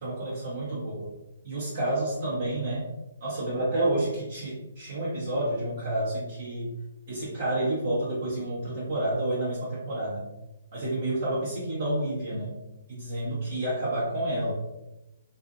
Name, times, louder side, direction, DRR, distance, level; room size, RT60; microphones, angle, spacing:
voice 1, 0.0-1.1 1.4-2.9 3.2-6.7 7.1-10.3 10.7-12.6 12.9-14.5, right 1 dB, 50° right, -10 dB, 1.0 m, -29 dB
2.5 x 2.5 x 2.5 m, 0.96 s
hypercardioid pair, 135°, 0 cm